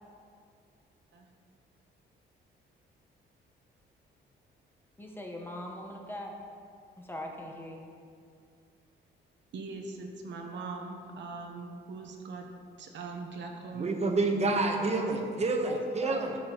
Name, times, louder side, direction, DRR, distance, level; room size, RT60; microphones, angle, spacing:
voice 1, 5.0-6.4 7.0-7.9 15.6-16.4, left 1 dB, 10° left, 0 dB, 1.0 m, -41 dB
voice 2, 9.5-12.5 12.8-13.9, right 4 dB, 65° right, 2 dB, 0.9 m, -41 dB
voice 3, 13.7-16.3, right 3 dB, 35° right, 3 dB, 1.0 m, -28 dB
11.5 x 6.1 x 3.0 m, 2.3 s
cardioid pair, 90°, 20 cm